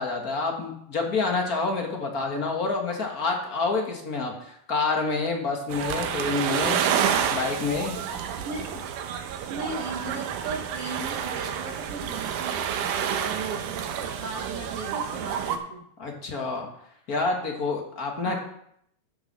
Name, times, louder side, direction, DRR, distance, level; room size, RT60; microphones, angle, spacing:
voice 1, 0.0-6.8 7.3-8.0 16.0-16.7 17.1-18.4, left 3 dB, 40° left, 2 dB, 1.5 m, -28 dB
sound 1, 5.7-15.6, right 8 dB, 80° right, 2.3 m, -29 dB
voice 2, 8.4-8.8 9.5-15.8 18.3-18.4, right 3 dB, 60° right, 0 dB, 1.8 m, -37 dB
10.0 x 6.0 x 6.6 m, 0.72 s
omnidirectional pair, 3.6 m